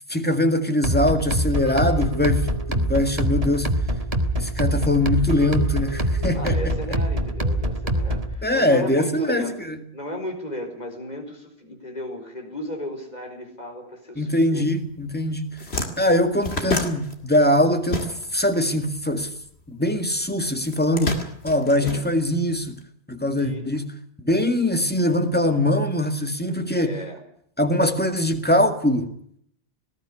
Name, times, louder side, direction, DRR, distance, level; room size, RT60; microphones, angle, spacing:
voice 1, 0.1-3.8 4.4-6.7 8.4-9.8 14.2-15.6 16.0-19.3 19.7-22.8 23.1-23.9 24.2-27.0 27.6-29.1, left 1 dB, 10° left, 2.0 m, -22 dB
sound 1, 0.8-8.3, right 1 dB, 35° right, 1.9 m, -24 dB
voice 2, 6.3-9.6 9.9-14.7 21.8-22.1 23.4-23.8 26.7-27.2, left 1 dB, 40° left, 4.8 m, -35 dB
sound 2, 15.0-15.1 15.4-18.5 18.8-20.0 20.6-22.7, left 2 dB, 75° left, 2.6 m, -29 dB
19.5 x 15.0 x 10.0 m
omnidirectional pair, 1.1 m